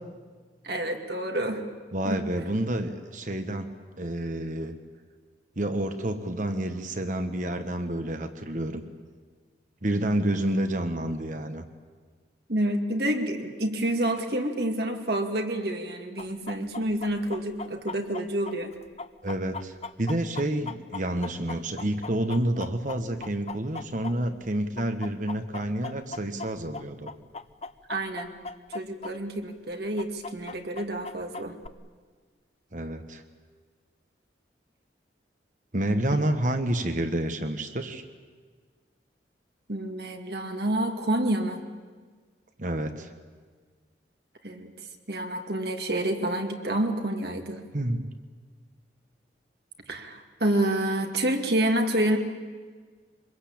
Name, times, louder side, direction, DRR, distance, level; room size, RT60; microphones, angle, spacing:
voice 1, 0.6-1.6 2.0-2.2 12.5-18.7 27.9-28.3 28.7-31.6 36.1-36.2 39.7-41.6 44.4-44.7 45.1-47.6 49.9-52.2, right 1 dB, 65° right, 3 dB, 2.4 m, -28 dB
voice 2, 1.9-3.7 4.0-4.8 5.6-8.8 9.8-11.6 19.2-27.1 32.7-33.2 35.7-38.0 42.6-43.1 47.7-48.1, right 1 dB, 45° right, 7 dB, 1.4 m, -29 dB
Chicken rooster, 16.2-24.5 24.8-29.1 29.4-29.5 30.0-31.7, left 4 dB, 35° left, 0.7 m, -38 dB
24.5 x 21.5 x 8.8 m, 1.5 s
head